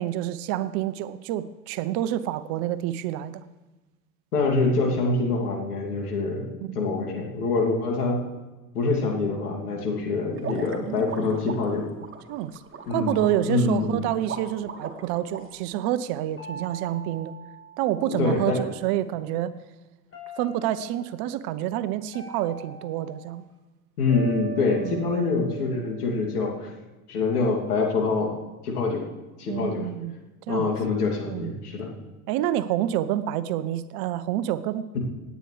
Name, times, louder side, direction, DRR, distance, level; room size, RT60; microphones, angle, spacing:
voice 1, 0.0-3.4 6.6-6.8 10.7-11.4 12.3-12.6 12.9-17.3 17.8-19.5 20.4-23.5 24.8-25.1 29.5-30.1 30.5-30.7 31.2-31.5 32.3-34.9, right 12 dB, 50° right, 14 dB, 0.8 m, -28 dB
voice 2, 4.3-6.5 6.7-8.2 8.7-11.8 12.9-13.1 13.5-14.0 18.1-18.6 24.0-26.7 27.1-28.3 28.6-29.0 29.4-29.9 30.5-31.9, left 3 dB, 75° left, -1 dB, 2.8 m, -25 dB
sound 1, 10.4-15.4, right 6 dB, 25° right, 2.0 m, -38 dB
sound 2, 16.4-18.7 20.1-21.1 22.1-23.4 24.1-26.4, right 6 dB, 30° left, 5.7 m, -41 dB
27.0 x 9.3 x 3.3 m, 1.1 s
figure-of-eight pair, 70°, 46 cm